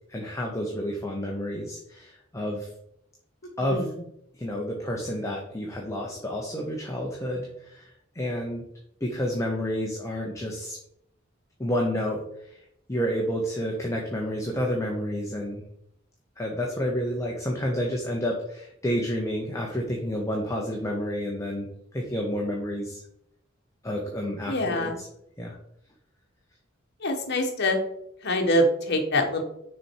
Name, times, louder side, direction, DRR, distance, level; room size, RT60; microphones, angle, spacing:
voice 1, 0.1-2.7 3.6-3.9 4.4-7.9 8.1-8.6 9.0-10.8 11.6-12.6 12.9-15.6 16.4-21.7 21.9-23.0 23.8-25.1 25.4-25.6, equal, 15° left, -1 dB, 0.8 m, -30 dB
voice 2, 24.5-24.9 27.0-27.8 28.2-29.4, left 1 dB, 55° left, 3 dB, 1.2 m, -24 dB
6.2 x 4.3 x 4.6 m, 0.75 s
head